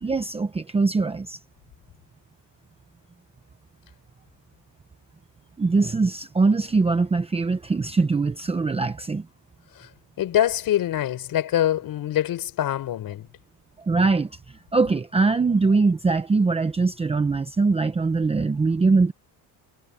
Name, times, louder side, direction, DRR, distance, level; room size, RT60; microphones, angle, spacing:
voice 1, 0.0-1.4 5.6-9.3 13.8-14.3 14.7-19.1, right 3 dB, 15° right, 0.9 m, -22 dB
voice 2, 10.2-13.3, left 12 dB, 50° left, 5.9 m, -24 dB
cardioid pair, 165°, 45 cm